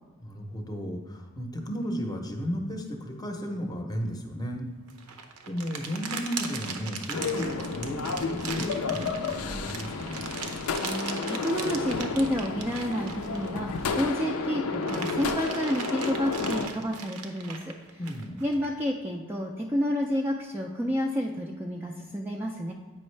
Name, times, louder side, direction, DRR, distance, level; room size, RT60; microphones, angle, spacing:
voice 1, 0.2-4.7 5.5-10.2 18.0-18.4, equal, 15° left, 3 dB, 0.7 m, -34 dB
sound 1, 4.9-14.1 14.5-18.7, right 5 dB, 80° right, 0.7 m, -39 dB
sound 2, 7.1-16.7, left 4 dB, 75° left, 0.5 m, -31 dB
voice 2, 10.8-17.7 18.4-22.7, equal, 10° right, -1 dB, 0.3 m, -30 dB
8.6 x 5.3 x 3.2 m, 1.3 s
head